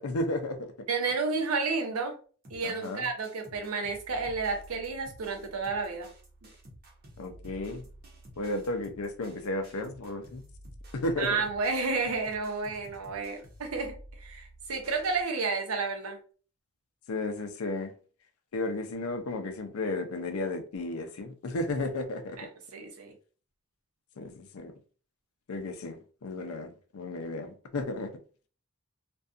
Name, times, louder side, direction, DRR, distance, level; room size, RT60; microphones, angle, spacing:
voice 1, 0.0-0.7 2.6-3.1 7.2-7.8 8.4-10.4 10.9-11.3 17.1-17.9 18.5-22.5 24.2-24.7 25.5-28.1, left 2 dB, 85° left, 0.5 m, -33 dB
voice 2, 0.9-2.1 2.5-6.1 11.2-16.2 22.4-23.1, right 4 dB, 85° right, 0.7 m, -31 dB
sound 1, 2.4-15.2, right 1 dB, 45° right, 0.8 m, -51 dB
2.6 x 2.3 x 2.4 m
head